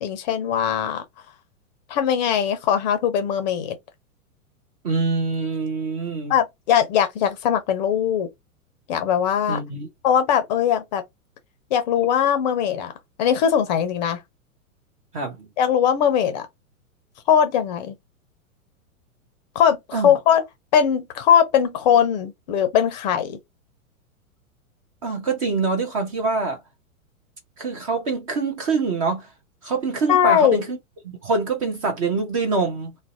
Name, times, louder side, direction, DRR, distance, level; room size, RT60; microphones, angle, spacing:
voice 1, 0.0-1.0 1.9-3.8 6.3-8.3 8.9-9.6 10.0-11.0 11.7-12.9 13.2-14.2 15.6-16.5 17.3-17.9 19.5-20.4 20.7-23.4 30.1-30.6, left 8 dB, 35° left, 0.5 m, -20 dB
voice 2, 4.8-6.3 9.5-9.9 15.1-15.5 19.9-20.1 25.0-26.6 27.6-29.3 29.6-30.8 31.0-32.9, right 4 dB, 25° right, 0.4 m, -25 dB
2.5 x 2.1 x 2.4 m
figure-of-eight pair, 105°, 43 cm